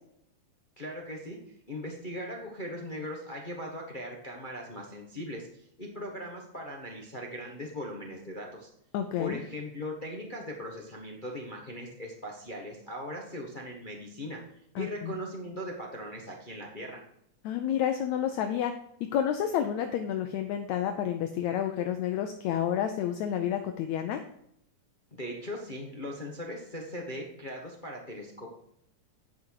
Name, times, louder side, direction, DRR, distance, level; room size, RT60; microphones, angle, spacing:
voice 1, 0.8-1.4 1.7-5.5 5.8-8.7 9.2-14.4 14.7-17.0 25.1-28.5, equal, 30° left, 0 dB, 0.9 m, -39 dB
voice 2, 8.9-9.4 14.8-15.1 17.4-18.7 19.1-24.2, left 9 dB, 75° left, 6 dB, 1.9 m, -30 dB
9.7 x 6.1 x 4.8 m, 0.73 s
omnidirectional pair, 3.5 m